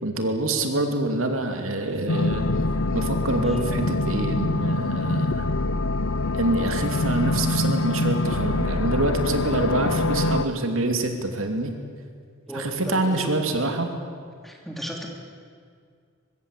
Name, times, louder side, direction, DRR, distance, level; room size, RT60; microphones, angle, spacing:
voice 1, 0.0-2.5 2.9-5.5 6.3-11.7 12.5-13.9, right 2 dB, 65° right, 5 dB, 2.7 m, -26 dB
sound 1, 2.1-10.4, left 2 dB, 65° left, 0.8 m, -24 dB
voice 2, 12.5-13.3 14.4-15.1, equal, ahead, 0 dB, 3.2 m, -35 dB
24.0 x 22.0 x 8.4 m, 2.2 s
head